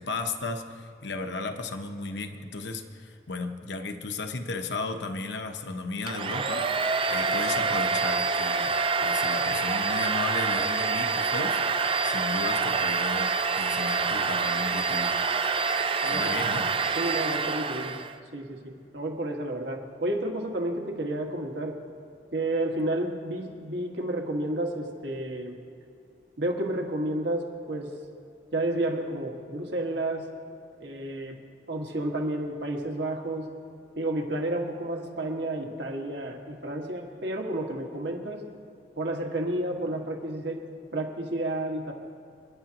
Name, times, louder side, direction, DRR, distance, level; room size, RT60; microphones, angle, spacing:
voice 1, 0.0-6.7 7.1-8.7 9.0-11.6 12.0-15.2 16.0-16.7, left 3 dB, 70° left, 6 dB, 0.9 m, -34 dB
Domestic sounds home sounds, 6.1-18.2, right 4 dB, 30° right, 0.4 m, -26 dB
voice 2, 16.0-16.4 17.0-18.0 18.3-18.6 18.9-21.7 22.3-25.6 26.4-27.9 28.5-30.2 30.8-31.3 31.7-33.4 34.0-38.4 39.0-40.6 40.9-41.9, right 1 dB, 70° right, 1 dB, 1.8 m, -31 dB
29.0 x 11.0 x 3.0 m, 2.6 s
head